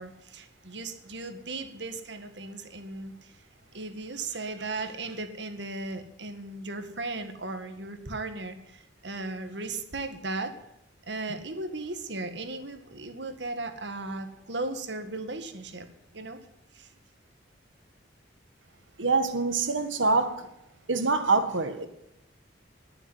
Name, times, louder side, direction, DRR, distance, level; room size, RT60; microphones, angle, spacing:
voice 1, 0.0-3.1 3.7-10.5 11.1-15.9 16.1-16.4 16.7-16.9, right 2 dB, 65° right, 1.8 m, -36 dB
voice 2, 19.0-20.5 20.9-21.9, right 3 dB, 90° right, 1.7 m, -25 dB
20.0 x 7.2 x 9.7 m
head